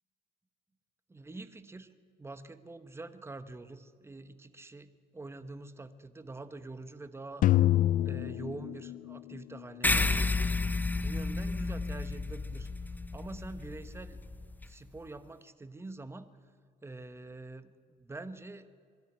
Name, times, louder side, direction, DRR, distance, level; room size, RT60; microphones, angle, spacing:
voice 1, 1.1-1.9 2.2-7.5 8.0-14.2 14.6-16.3 16.8-18.7, right 2 dB, 15° right, 11 dB, 1.1 m, -46 dB
sound 1, 7.4-9.6, left 13 dB, 50° left, 0.4 m, -26 dB
sound 2, 9.8-14.7, left 3 dB, 10° left, 0.8 m, -31 dB
22.0 x 13.0 x 9.8 m, 2.1 s
cardioid pair, 110°, 17 cm